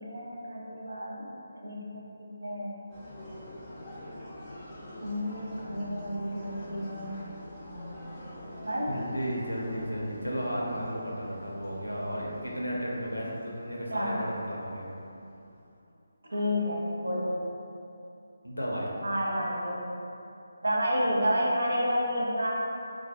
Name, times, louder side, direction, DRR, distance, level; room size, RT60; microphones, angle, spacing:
voice 1, 0.0-2.8 5.0-7.2 8.7-9.0 13.9-14.3 16.3-17.3 19.0-19.9 20.6-22.5, equal, 70° right, -4 dB, 0.5 m, -30 dB
sound 1, 2.9-15.8, left 1 dB, 10° left, 0.5 m, -45 dB
voice 2, 8.9-14.9 18.4-18.9, equal, 85° left, -3 dB, 0.5 m, -34 dB
2.3 x 2.0 x 2.8 m, 2.7 s
figure-of-eight pair, 150°, 0 cm